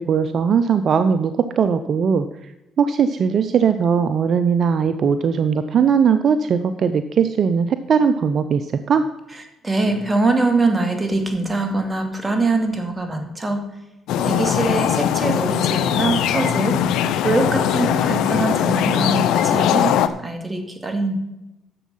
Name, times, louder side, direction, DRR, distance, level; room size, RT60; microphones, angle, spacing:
voice 1, 0.0-2.5 2.8-9.1, right 6 dB, 55° right, 11 dB, 0.6 m, -19 dB
voice 2, 9.6-13.6 14.2-16.8 17.2-19.9 20.2-21.1, right 3 dB, 20° right, 6 dB, 2.4 m, -22 dB
sound 1, 14.1-20.1, left 9 dB, 75° left, 0.7 m, -20 dB
11.0 x 7.3 x 5.6 m, 0.96 s
supercardioid pair, 60°, 0 cm